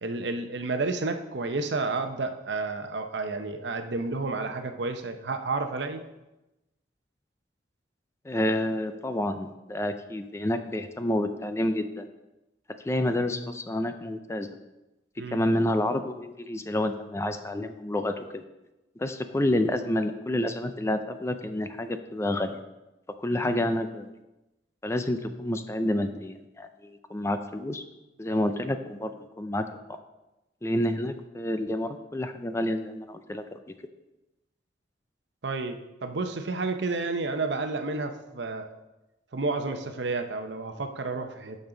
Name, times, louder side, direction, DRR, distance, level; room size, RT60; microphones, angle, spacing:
voice 1, 0.0-6.0 15.2-15.4 35.4-38.8 39.3-41.6, right 3 dB, 70° right, 7 dB, 0.8 m, -31 dB
voice 2, 8.2-12.1 12.8-14.6 15.3-18.4 19.0-22.6 23.2-24.1 24.8-27.8 28.2-29.6 30.6-33.6, left 1 dB, 15° left, 8 dB, 0.4 m, -29 dB
12.0 x 5.4 x 3.9 m, 0.99 s
head